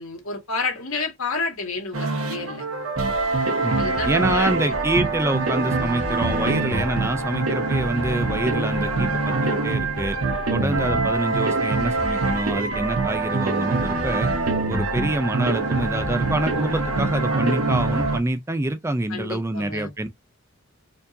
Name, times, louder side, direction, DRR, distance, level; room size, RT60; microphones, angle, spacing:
voice 1, 0.0-2.6 3.8-5.3 19.1-19.9, left 3 dB, 80° left, 1.8 m, -30 dB
sound 1, 1.9-18.2, right 3 dB, 80° right, 1.0 m, -24 dB
voice 2, 3.6-10.2 10.5-14.3 14.7-20.1, right 2 dB, 15° right, 0.4 m, -26 dB
4.4 x 2.7 x 2.6 m
head